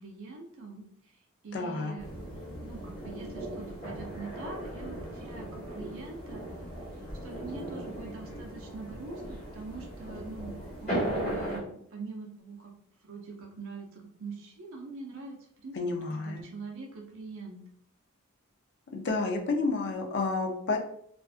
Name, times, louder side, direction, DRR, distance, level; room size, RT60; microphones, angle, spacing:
voice 1, 0.0-6.4 7.2-12.7 13.0-15.4 15.6-15.8 16.0-17.6, right 4 dB, 60° right, 1 dB, 0.5 m, -43 dB
voice 2, 1.5-1.9 15.7-16.4 18.9-20.8, left 3 dB, 50° left, 2 dB, 0.5 m, -30 dB
sound 1, 2.0-11.6, right 1 dB, 30° left, 1.3 m, -37 dB
2.4 x 2.4 x 2.3 m, 0.67 s
head